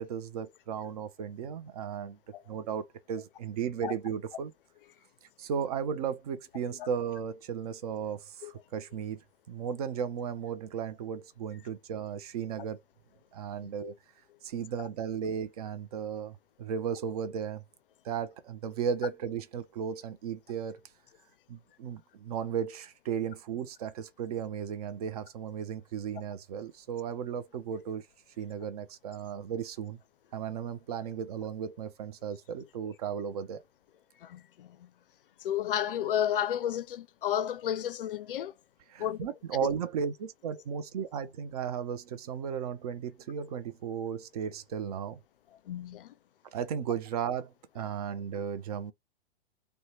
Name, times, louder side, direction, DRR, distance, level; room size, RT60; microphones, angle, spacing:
voice 1, 0.0-2.2 2.5-4.5 5.4-12.8 13.3-13.9 14.4-17.6 18.0-20.8 21.5-28.1 28.4-30.0 30.3-33.6 38.9-45.2 46.5-48.9, right 7 dB, 40° right, 0.4 m, -35 dB
voice 2, 34.2-34.9 35.4-38.5 39.0-39.2 45.7-46.1, left 10 dB, 55° left, 0.4 m, -32 dB
2.7 x 2.1 x 3.0 m
figure-of-eight pair, 105°, 33 cm